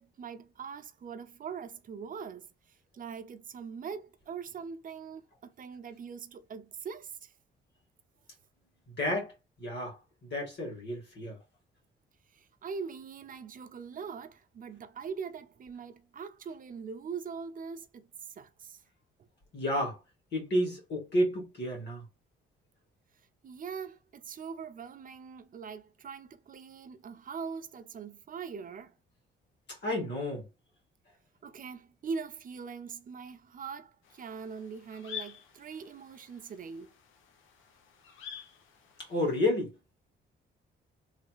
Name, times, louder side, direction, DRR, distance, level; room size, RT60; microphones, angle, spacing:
voice 1, 0.0-7.3 12.3-18.1 18.4-18.8 19.2-19.3 23.4-28.9 31.4-36.9, right 6 dB, 45° right, 0.5 m, -42 dB
voice 2, 8.9-9.3 9.6-11.4 19.5-20.0 20.3-22.1 29.7-30.5 39.0-39.7, left 1 dB, 60° left, 1.9 m, -31 dB
sound 1, 34.0-39.4, left 8 dB, 80° left, 0.8 m, -48 dB
3.2 x 2.8 x 2.4 m
cardioid pair, 90°, 20 cm